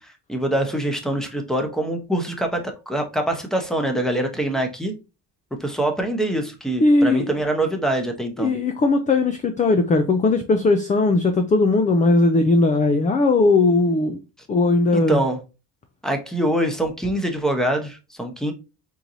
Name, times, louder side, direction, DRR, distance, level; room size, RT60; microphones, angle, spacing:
voice 1, 0.3-5.0 5.5-8.5 14.9-15.4 16.0-18.5, right 1 dB, ahead, 0.9 m, -24 dB
voice 2, 6.8-7.3 8.4-14.2 14.5-15.2, left 3 dB, 20° left, 0.3 m, -18 dB
4.5 x 3.9 x 2.6 m
cardioid pair, 140°, 42 cm